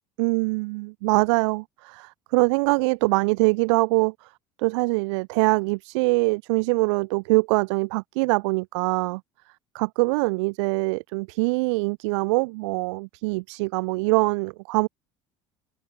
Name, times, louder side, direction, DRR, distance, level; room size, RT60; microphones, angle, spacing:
voice 1, 0.2-4.3 4.6-9.2 9.7-14.9, right 26 dB, 60° right, 1.4 m, -23 dB
figure-of-eight pair, 60°, 17 cm